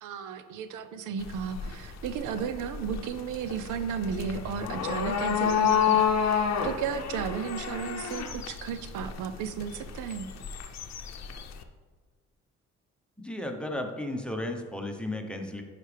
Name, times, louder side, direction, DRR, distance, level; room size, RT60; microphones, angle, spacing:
voice 1, 0.0-10.3, right 7 dB, 90° right, 11 dB, 0.6 m, -34 dB
sound 1, 1.2-11.6, left 7 dB, 60° left, 0.7 m, -30 dB
voice 2, 13.2-15.6, left 1 dB, 5° left, 3 dB, 0.9 m, -34 dB
9.9 x 5.0 x 3.4 m, 1.5 s
cardioid pair, 90°, 30 cm